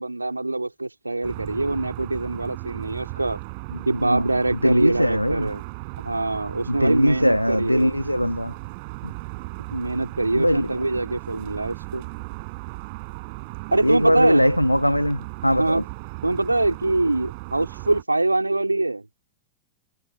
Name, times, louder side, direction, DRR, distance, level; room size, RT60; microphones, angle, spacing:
voice 1, 0.0-3.4 3.9-5.6 6.0-7.9 9.7-12.1 13.7-14.5 15.5-15.8 16.2-19.1, right 2 dB, 85° right, 3.6 m, -24 dB
sound 1, 1.2-18.0, right 29 dB, 45° right, 7.7 m, -37 dB
voice 2, 3.7-5.5 6.7-8.5 9.0-9.1 10.3-10.7 13.8-15.8, equal, 90° left, 1.4 m, -21 dB
figure-of-eight pair, 90°, 0 cm